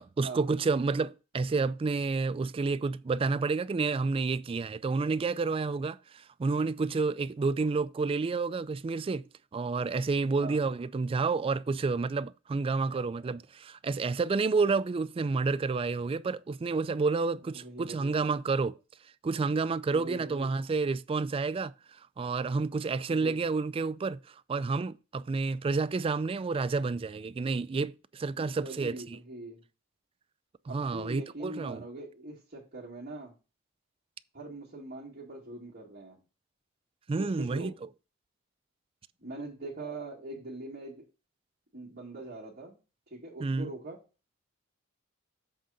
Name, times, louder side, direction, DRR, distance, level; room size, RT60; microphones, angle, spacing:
voice 1, 0.0-9.2 9.5-18.8 19.2-21.7 22.2-24.2 24.5-29.2 30.7-31.8 37.1-37.7 43.4-43.7, right 4 dB, 25° right, 0.3 m, -30 dB
voice 2, 17.5-18.1 19.9-20.5 23.1-23.4 28.3-29.6 30.7-33.3 34.3-36.2 37.2-37.7 39.2-41.0 41.7-42.8 43.1-44.0, right 2 dB, 45° right, 2.2 m, -42 dB
7.8 x 3.7 x 5.6 m
head